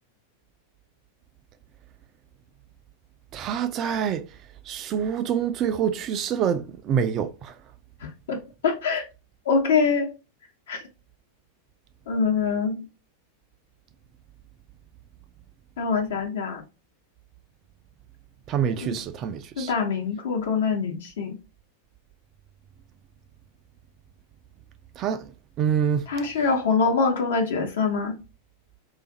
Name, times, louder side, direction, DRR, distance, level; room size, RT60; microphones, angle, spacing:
voice 1, 3.3-4.2 4.7-7.5 18.5-19.7 25.0-25.3 25.6-26.1, right 8 dB, 35° right, 0.3 m, -26 dB
voice 2, 8.0-8.4 8.6-9.1 9.4-10.1 10.7-10.8 12.1-12.9 15.8-16.6 18.8-19.0 19.6-21.4 26.1-28.2, left 5 dB, 60° left, 0.9 m, -24 dB
2.4 x 2.4 x 3.8 m
figure-of-eight pair, 90°, 0 cm